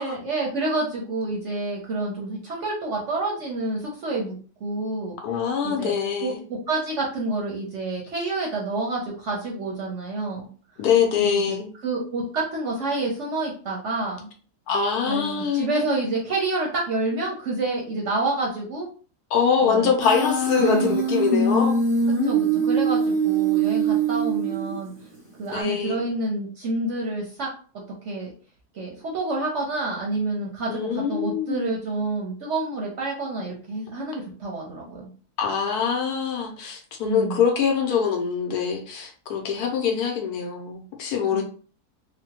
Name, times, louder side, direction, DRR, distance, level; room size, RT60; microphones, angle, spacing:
voice 1, 0.0-4.3 4.6-5.2 5.6-6.0 6.2-10.5 11.2-11.6 11.8-14.3 15.1-18.9 19.6-19.9 20.6-21.0 22.2-24.9 25.4-27.5 28.0-28.3 28.7-35.1 37.0-37.4 41.3-41.4, right 2 dB, 60° right, -2 dB, 0.8 m, -28 dB
voice 2, 5.2-6.4 10.8-11.7 14.7-15.7 19.3-21.8 25.5-26.1 30.7-31.7 35.4-41.4, left 7 dB, 70° left, 2 dB, 1.1 m, -24 dB
Human voice, 20.0-25.0, right 4 dB, 5° right, 0.8 m, -23 dB
3.1 x 2.1 x 2.8 m, 0.40 s
omnidirectional pair, 1.8 m